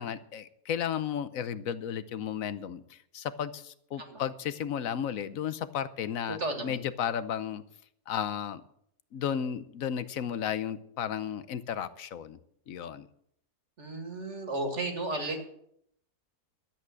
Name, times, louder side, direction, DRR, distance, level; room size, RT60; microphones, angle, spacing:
voice 1, 0.0-7.6 8.1-8.6 9.1-12.4 12.7-13.1, left 9 dB, 65° left, 14 dB, 1.1 m, -34 dB
voice 2, 6.4-6.8 13.8-15.4, right 2 dB, 50° right, 4 dB, 2.3 m, -33 dB
12.5 x 8.4 x 7.7 m, 0.71 s
omnidirectional pair, 1.6 m